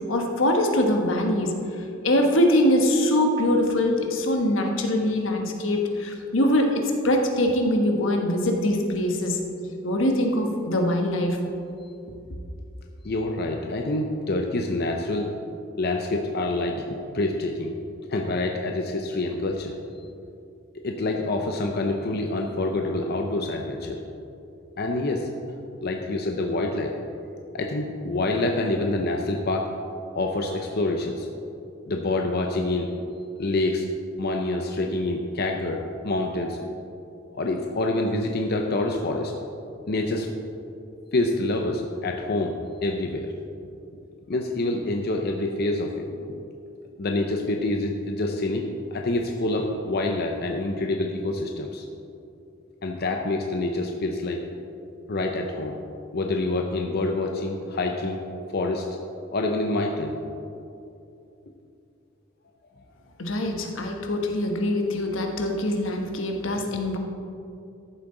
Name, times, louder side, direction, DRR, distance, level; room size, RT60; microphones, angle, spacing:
voice 1, 0.1-1.5 2.0-9.4 9.8-11.4 63.2-67.0, left 1 dB, 85° left, 2 dB, 1.2 m, -23 dB
voice 2, 13.0-15.3 15.8-16.8 17.1-17.7 18.1-19.7 20.8-24.0 24.8-25.3 25.8-26.9 27.5-29.7 30.1-31.3 31.9-32.9 33.4-33.9 34.2-36.6 37.3-39.3 39.9-40.3 41.1-43.3 44.3-46.3 47.0-51.9 52.8-54.4 55.1-55.8 56.1-58.2 58.5-58.9 59.3-60.1 62.8-62.9, left 2 dB, 55° left, 2 dB, 0.6 m, -26 dB
13.5 x 7.5 x 3.9 m, 2.6 s
head